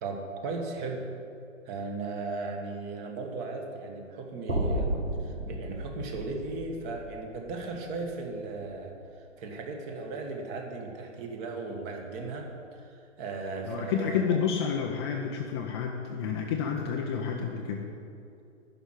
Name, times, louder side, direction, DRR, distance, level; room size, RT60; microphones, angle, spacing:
voice 1, 0.0-1.0 1.6-8.9 9.4-14.5, right 3 dB, 25° right, 3 dB, 1.4 m, -36 dB
sound 1, 4.5-8.7, right 1 dB, 80° right, 2.3 m, -34 dB
voice 2, 13.6-17.9, left 7 dB, 20° left, 1 dB, 0.6 m, -30 dB
11.0 x 6.1 x 9.0 m, 2.6 s
figure-of-eight pair, 130°, 38 cm